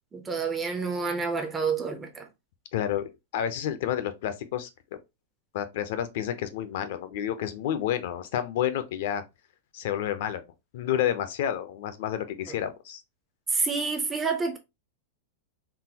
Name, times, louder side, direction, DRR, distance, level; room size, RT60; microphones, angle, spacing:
voice 1, 0.1-2.2 13.5-14.6, right 4 dB, 10° right, 0.4 m, -28 dB
voice 2, 2.7-4.7 5.5-9.2 9.7-10.4 10.7-13.0, left 10 dB, 50° left, 0.5 m, -30 dB
3.8 x 2.2 x 2.8 m
supercardioid pair, 170°, 0 cm